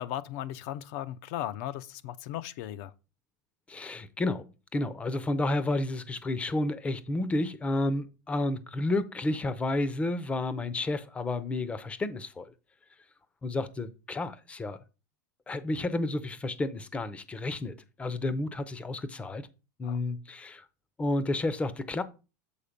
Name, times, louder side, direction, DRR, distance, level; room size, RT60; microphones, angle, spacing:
voice 1, 0.0-2.9 19.8-20.0, left 12 dB, 60° left, 0.5 m, -36 dB
voice 2, 3.7-4.4 4.7-12.5 13.4-14.8 15.5-19.5 19.8-20.6 21.0-22.0, left 2 dB, 10° left, 0.5 m, -31 dB
7.1 x 4.0 x 5.1 m
supercardioid pair, 150°, 10 cm